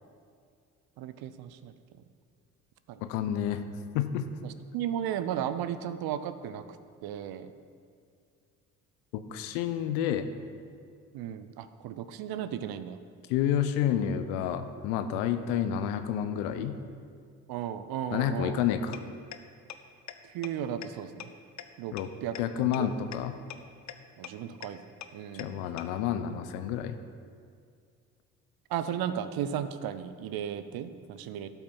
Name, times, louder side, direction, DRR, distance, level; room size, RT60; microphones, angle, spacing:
voice 1, 1.0-1.7 2.9-3.0 4.4-6.6 7.0-7.5 11.1-13.0 17.5-18.6 20.3-21.3 21.8-22.4 22.6-22.9 24.2-24.8 25.1-25.5 28.7-31.5, right 10 dB, 60° right, 12 dB, 0.7 m, -35 dB
voice 2, 3.0-3.6 3.9-4.3 9.1-10.3 13.3-16.7 18.1-19.0 21.9-22.1 22.4-23.4 25.3-26.9, left 9 dB, 70° left, 10 dB, 0.8 m, -29 dB
sound 1, 18.9-19.0 19.3-19.4 19.7-19.8 20.1-20.2 20.4-20.5 20.8-20.9 21.2-21.3 21.6-21.7 22.0-22.1 22.3-22.4 22.7-22.8 23.1-23.2 23.5-23.6 23.9-24.0 24.2-24.3 24.6-24.7 25.0-25.1 25.4-25.5 25.8-25.9, left 11 dB, 45° left, 0.7 m, -39 dB
12.0 x 5.9 x 5.4 m, 2.3 s
hypercardioid pair, 50°, 42 cm